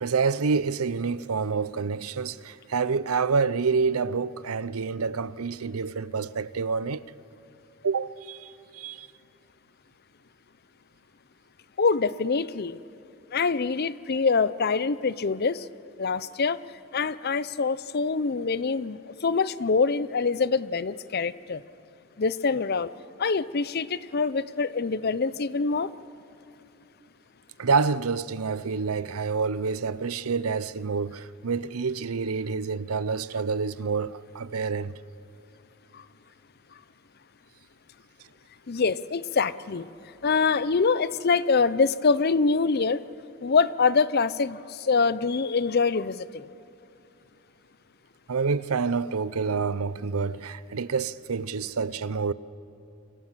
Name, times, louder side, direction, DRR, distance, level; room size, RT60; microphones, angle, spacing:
voice 1, 0.0-7.1 7.8-9.1 27.6-34.9 48.3-52.3, right 5 dB, 80° right, 0.6 m, -28 dB
voice 2, 11.8-12.8 13.3-15.7 16.0-16.6 16.9-21.6 22.2-22.9 23.2-25.9 35.9-36.0 38.7-39.9 40.2-43.0 43.4-46.5, left 4 dB, 45° left, 0.6 m, -25 dB
28.0 x 24.0 x 7.5 m
head